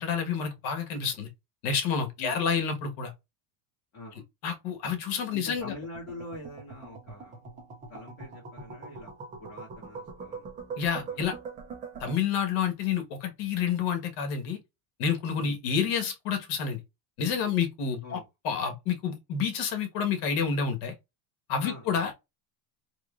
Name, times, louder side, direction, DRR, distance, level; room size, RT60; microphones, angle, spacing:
voice 1, 0.0-1.3 1.6-3.1 4.4-5.7 10.8-11.4 12.0-14.6 15.0-16.8 17.2-20.9 21.5-22.1, left 6 dB, 75° left, 1.3 m, -29 dB
voice 2, 5.3-7.4 7.9-9.1 9.4-10.4 11.0-11.2 15.4-15.6 18.0-18.2 21.6-22.0, left 2 dB, 30° left, 1.9 m, -43 dB
sound 1, 5.6-12.1, right 4 dB, 20° right, 0.4 m, -42 dB
3.6 x 3.0 x 2.3 m
cardioid pair, 170°, 48 cm